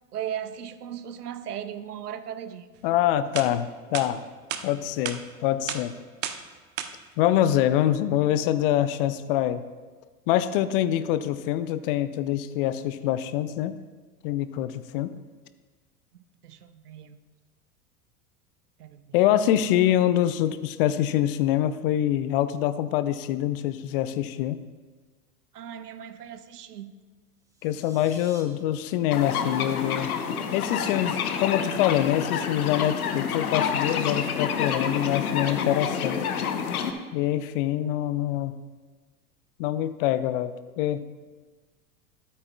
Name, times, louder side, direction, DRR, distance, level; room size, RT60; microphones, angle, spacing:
voice 1, 0.1-2.7 16.1-17.2 18.8-19.2 25.5-26.9, right 9 dB, 75° right, 13 dB, 0.7 m, -37 dB
voice 2, 2.8-4.2 4.6-5.9 7.2-9.6 10.3-13.8 14.2-15.1 19.1-24.6 27.6-30.1 30.5-36.2 37.1-38.6 39.6-41.0, left 12 dB, 40° left, 13 dB, 0.5 m, -25 dB
sound 1, 2.9-3.0 3.3-3.5 3.9-4.1 4.5-4.6 5.1-5.2 5.7-5.8 6.2-6.4 6.8-6.9, right 10 dB, 25° right, 0.4 m, -31 dB
sound 2, 27.4-28.4, right 2 dB, 5° right, 1.2 m, -51 dB
sound 3, 29.1-36.9, left 7 dB, 70° left, 0.9 m, -28 dB
13.0 x 8.5 x 2.3 m, 1.3 s
figure-of-eight pair, 90°, 46 cm